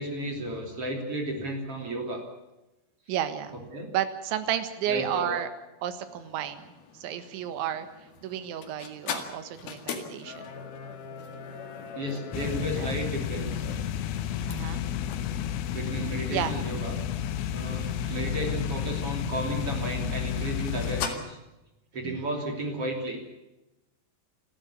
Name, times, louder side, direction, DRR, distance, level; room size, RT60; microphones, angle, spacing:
voice 1, 0.0-2.2 3.1-3.2 3.5-3.9 4.9-5.3 11.9-13.6 15.7-17.0 17.5-21.4 21.9-23.2, right 1 dB, 35° right, 3 dB, 3.3 m, -33 dB
voice 2, 3.1-3.6 3.9-5.5 5.8-6.6 6.9-7.9 8.2-10.5 12.7-12.9 14.5-14.8 16.3-16.5 17.9-18.3 22.0-22.2, right 10 dB, 80° right, 10 dB, 3.9 m, -32 dB
sound 1, 6.1-21.1, left 7 dB, 60° left, 3.5 m, -42 dB
sound 2, 12.3-21.1, left 9 dB, 90° left, 3.5 m, -31 dB
28.5 x 13.0 x 8.4 m, 0.99 s
omnidirectional pair, 5.2 m